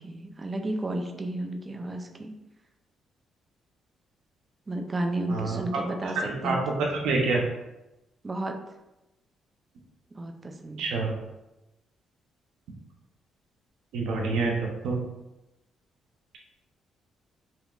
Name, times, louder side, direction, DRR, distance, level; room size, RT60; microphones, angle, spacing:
voice 1, 0.0-2.3 4.7-6.6 8.2-8.6 10.1-11.0, right 1 dB, 25° right, 4 dB, 0.4 m, -32 dB
voice 2, 5.3-5.6 6.2-7.4 10.8-11.1 13.9-15.0, right 3 dB, 90° right, -1 dB, 0.7 m, -27 dB
3.1 x 2.9 x 2.3 m, 0.97 s
cardioid pair, 90°, 0 cm